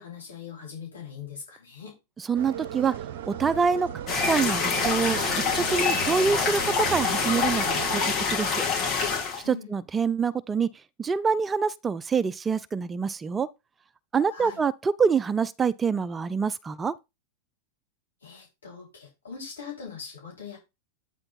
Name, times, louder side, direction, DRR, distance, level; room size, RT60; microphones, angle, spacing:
voice 1, 0.0-2.0 9.4-9.7 14.3-14.6 18.2-20.6, left 6 dB, 80° left, 3.6 m, -41 dB
voice 2, 2.2-2.9 3.3-3.9 4.3-8.6 9.5-10.7 11.0-13.5 14.1-16.9, right 5 dB, 20° right, 0.4 m, -26 dB
sound 1, 2.3-8.1, right 10 dB, 60° right, 0.8 m, -37 dB
sound 2, 4.1-9.4, left 5 dB, 35° left, 2.8 m, -26 dB
8.7 x 4.3 x 4.2 m
figure-of-eight pair, 90°, 0 cm